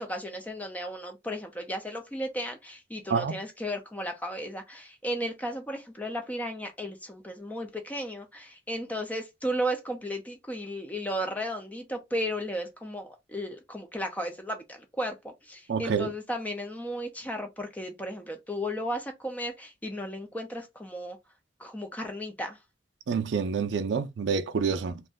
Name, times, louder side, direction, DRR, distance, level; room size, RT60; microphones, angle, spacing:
voice 1, 0.0-21.2 21.6-22.6, equal, 10° left, 0.5 m, -34 dB
voice 2, 3.1-3.4 15.7-16.1 23.1-25.0, right 5 dB, 75° right, 0.4 m, -28 dB
2.5 x 2.1 x 3.5 m
head